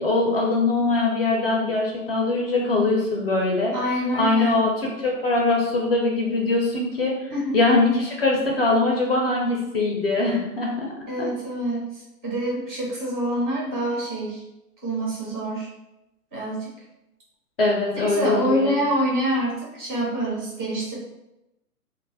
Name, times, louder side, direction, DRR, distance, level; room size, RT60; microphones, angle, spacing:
voice 1, 0.0-3.8 4.1-7.2 7.5-10.9 11.2-11.3 17.6-18.7, left 3 dB, 40° left, -1 dB, 0.4 m, -22 dB
voice 2, 3.7-4.6 7.3-7.5 11.1-14.4 14.8-15.7 16.3-16.7 17.9-20.9, right 1 dB, 15° right, -6 dB, 0.4 m, -26 dB
2.3 x 2.0 x 3.3 m, 0.92 s
hypercardioid pair, 140°, 46 cm